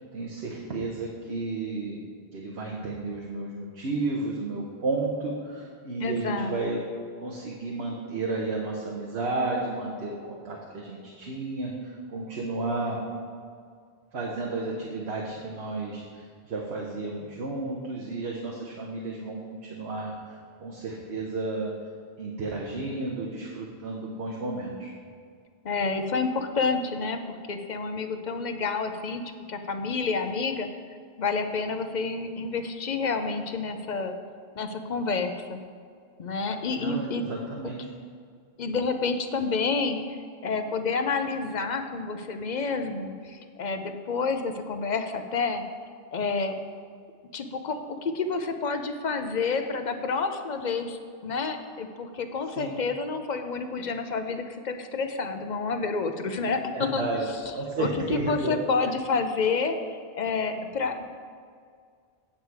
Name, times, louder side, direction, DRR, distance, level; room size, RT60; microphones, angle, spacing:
voice 1, 0.1-2.0 2.3-6.8 7.2-13.0 14.1-21.7 22.2-24.9 36.8-37.8 52.6-52.7 56.7-57.2 57.5-58.5, right 3 dB, 85° right, -2 dB, 1.3 m, -32 dB
voice 2, 6.0-6.5 25.6-29.2 29.5-30.7 31.2-34.2 34.6-35.6 36.2-37.2 38.6-40.2 40.4-45.6 46.1-46.5 47.3-57.0 57.8-61.1, left 4 dB, 50° left, 7 dB, 0.7 m, -29 dB
8.8 x 7.3 x 4.7 m, 2.1 s
omnidirectional pair, 1.1 m